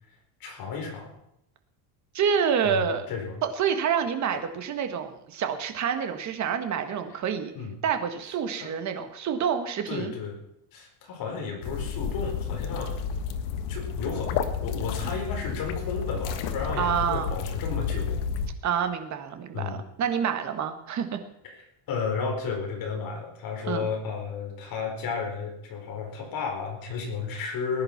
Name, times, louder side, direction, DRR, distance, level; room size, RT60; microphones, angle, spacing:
voice 1, 0.4-1.1 2.7-3.4 7.1-7.2 7.5-7.7 8.6-8.7 9.9-10.4 10.7-12.9 13.7-14.3 14.6-18.2 19.5-19.8 21.4-21.6 21.9-27.8, left 5 dB, 45° left, 1 dB, 4.6 m, -33 dB
voice 2, 2.1-3.1 3.4-7.5 7.8-10.1 16.8-17.3 18.6-21.2 23.7-23.9, right 7 dB, 35° right, 7 dB, 1.7 m, -27 dB
sound 1, 11.6-18.5, left 6 dB, 70° left, 1.7 m, -31 dB
19.5 x 10.5 x 5.9 m, 0.80 s
cardioid pair, 170°, 50 cm